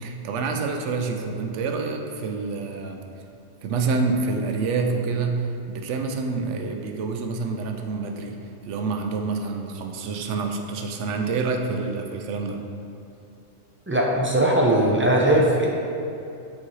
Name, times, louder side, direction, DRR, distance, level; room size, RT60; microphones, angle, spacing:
voice 1, 0.0-3.0 3.6-8.4 8.7-12.6, right 4 dB, 70° right, 3 dB, 0.9 m, -27 dB
voice 2, 13.9-15.7, right 1 dB, 15° right, -3 dB, 0.4 m, -19 dB
8.5 x 4.1 x 3.2 m, 2.6 s
omnidirectional pair, 1.3 m